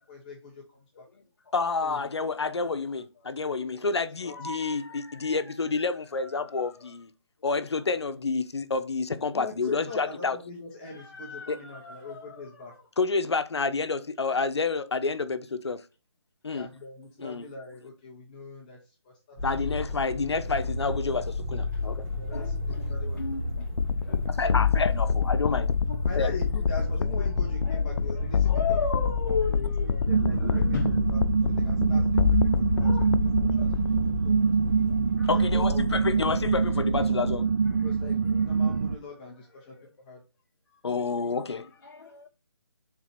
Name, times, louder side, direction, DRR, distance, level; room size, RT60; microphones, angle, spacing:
voice 1, 0.1-0.6 1.0-1.1 1.8-2.9 3.9-4.3 9.3-12.7 16.5-18.8 19.3-19.9 22.2-23.4 24.4-24.8 26.0-28.8 29.2-30.8 31.1-31.2 31.5-33.1 33.6-33.9 34.2-34.5 35.3-35.9 37.8-38.2 38.4-39.7 40.1-40.2 40.8-41.3, left 3 dB, 15° left, 1.0 m, -42 dB
voice 2, 1.5-7.1 7.4-10.4 11.5-11.6 13.0-15.8 16.4-16.7 17.2-17.5 19.4-22.0 24.3-25.7 26.1-26.3 35.3-37.5 40.8-41.7, left 4 dB, 75° left, 0.9 m, -29 dB
voice 3, 4.3-5.0 10.9-12.5 22.3-23.6 24.1-24.2 27.6-27.8 28.4-31.0 32.8-33.1 33.5-33.7 35.2-35.3 41.9-42.3, left 5 dB, 50° left, 1.1 m, -35 dB
sound 1, 19.4-37.1, left 3 dB, 15° right, 1.4 m, -32 dB
sound 2, 23.8-34.2, left 6 dB, 90° left, 0.4 m, -28 dB
sound 3, 30.1-39.0, right 5 dB, 35° right, 0.6 m, -25 dB
4.8 x 4.1 x 5.8 m
hypercardioid pair, 165°, 14 cm